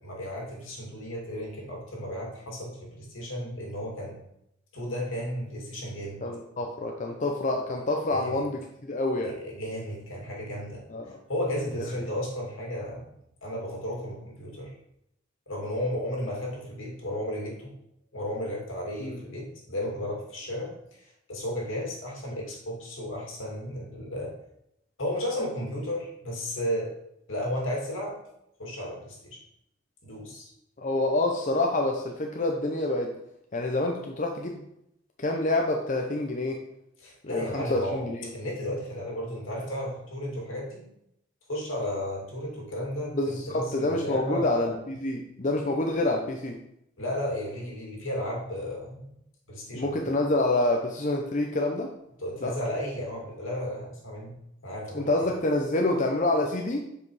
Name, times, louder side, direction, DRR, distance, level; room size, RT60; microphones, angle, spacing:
voice 1, 0.0-4.2 4.7-6.2 8.1-8.4 9.2-13.1 13.4-14.7 15.5-17.7 18.1-20.7 21.3-24.3 25.0-26.9 27.3-28.2 28.6-29.4 30.0-30.5 37.0-38.0 38.3-40.9 41.5-44.5 47.0-49.2 49.5-50.2 52.2-54.3 54.6-55.1, left 1 dB, 80° left, -1 dB, 2.4 m, -34 dB
voice 2, 6.2-9.3 10.9-11.2 11.7-12.0 19.0-19.2 30.8-33.1 33.5-34.6 35.2-36.6 37.2-38.3 43.1-46.6 49.7-51.9 52.4-52.5 54.9-56.8, left 2 dB, 40° left, 2 dB, 0.7 m, -27 dB
7.4 x 5.0 x 4.8 m, 0.78 s
head